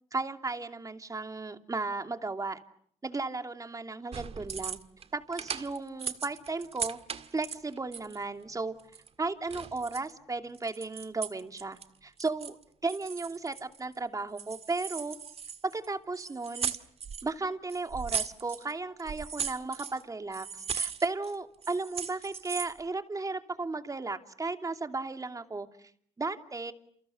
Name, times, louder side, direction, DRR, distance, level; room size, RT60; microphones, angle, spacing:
voice 1, 0.1-2.6 3.0-4.8 5.1-7.0 7.3-8.7 9.2-12.6 12.8-15.2 15.6-16.7 17.2-25.9 26.2-26.7, right 3 dB, 25° right, 6 dB, 2.8 m, -35 dB
sound 1, 4.1-5.1 5.3-8.2 8.8-10.1 10.5-11.8 12.2-12.6 12.9-14.0 14.4-15.9 16.1-17.3 17.7-18.7 19.0-20.0 20.3-21.4 21.6-22.8, right 7 dB, 55° right, 1.8 m, -38 dB
29.0 x 29.0 x 6.8 m, 0.65 s
supercardioid pair, 65°, 12 cm